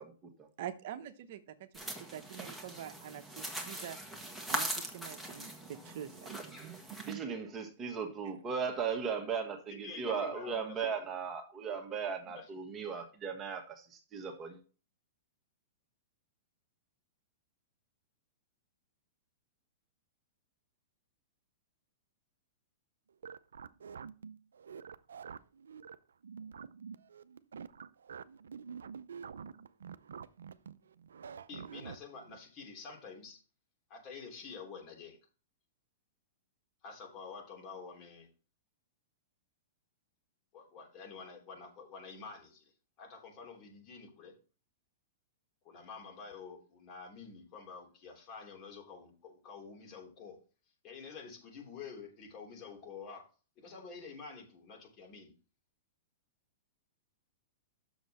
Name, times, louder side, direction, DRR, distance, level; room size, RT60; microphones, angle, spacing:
voice 1, 0.6-1.7 2.0-4.0 4.5-7.2, right 10 dB, 60° right, 0.8 m, -45 dB
sound 1, 1.7-7.1, right 1 dB, ahead, 1.6 m, -41 dB
voice 2, 7.1-14.6, right 6 dB, 25° right, 1.5 m, -37 dB
voice 3, 9.8-10.5 10.8-10.9 12.3-12.5 31.5-33.4 33.9-35.2 36.8-38.3 40.5-42.7 43.0-44.3 45.6-50.4 50.8-53.3 53.6-55.3, left 5 dB, 40° left, 3.2 m, -48 dB
sound 2, 23.1-32.4, right 6 dB, 85° right, 0.4 m, -47 dB
7.7 x 6.5 x 4.2 m
hypercardioid pair, 120°, 0 cm